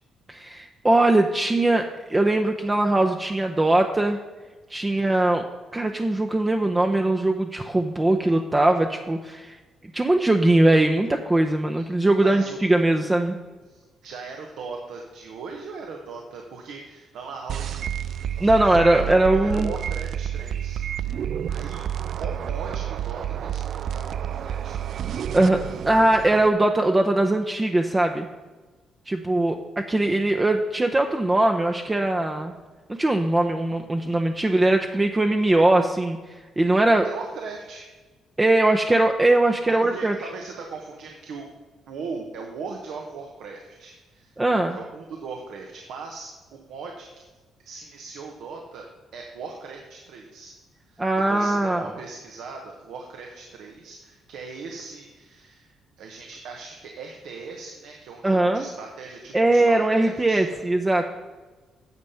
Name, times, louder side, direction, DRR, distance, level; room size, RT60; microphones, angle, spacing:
voice 1, 0.3-4.2 4.7-5.4 5.7-9.6 9.9-13.4 18.4-19.7 25.3-28.3 29.1-32.5 32.9-37.1 38.4-40.2 44.4-44.8 51.0-51.9 58.2-58.6 59.3-61.0, right 2 dB, 20° right, 4 dB, 0.6 m, -21 dB
voice 2, 4.9-5.3 11.7-12.6 13.7-18.2 18.4-21.2 21.5-21.8 22.2-25.3 37.0-37.9 39.8-41.5 41.9-44.4 44.7-47.3 47.6-48.9 49.1-50.5 50.9-60.6, right 4 dB, 80° right, 1 dB, 1.2 m, -39 dB
sound 1, 17.5-26.5, right 10 dB, 65° right, 0.3 m, -30 dB
9.5 x 6.8 x 5.7 m, 1.3 s
cardioid pair, 90°, 0 cm